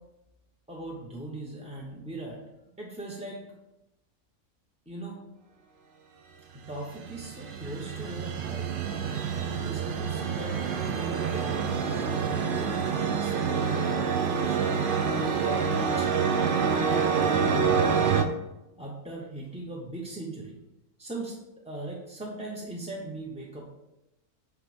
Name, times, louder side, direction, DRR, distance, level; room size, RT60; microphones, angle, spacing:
voice 1, 0.7-2.4 2.8-3.5 4.9-5.2 6.5-8.7 9.1-14.8 15.2-16.1 16.8-18.2 18.8-20.6 21.0-21.4 21.6-23.7, right 2 dB, 5° right, -3 dB, 0.6 m, -39 dB
sound 1, 6.7-18.2, right 6 dB, 60° right, 0.5 m, -27 dB
8.2 x 3.3 x 5.1 m, 0.93 s
omnidirectional pair, 1.6 m